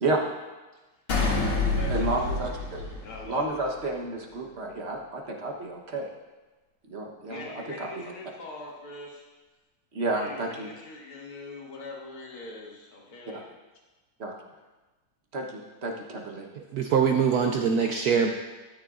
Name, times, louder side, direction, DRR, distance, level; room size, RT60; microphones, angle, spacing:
voice 1, 1.1-2.3 3.0-3.6 7.3-9.3 10.0-13.5, left 2 dB, 90° left, -3 dB, 2.6 m, -43 dB
sound 1, 1.1-3.7, left 3 dB, 75° left, 2.6 m, -28 dB
voice 2, 1.9-2.8 3.2-6.1 6.9-7.5 7.8-8.1 9.9-10.7 13.3-13.4 14.2-14.3 15.3-16.5, right 2 dB, 40° right, 0 dB, 1.1 m, -31 dB
voice 3, 16.6-18.3, right 6 dB, 75° right, 3 dB, 0.9 m, -23 dB
13.0 x 9.9 x 2.5 m, 1.2 s
omnidirectional pair, 2.3 m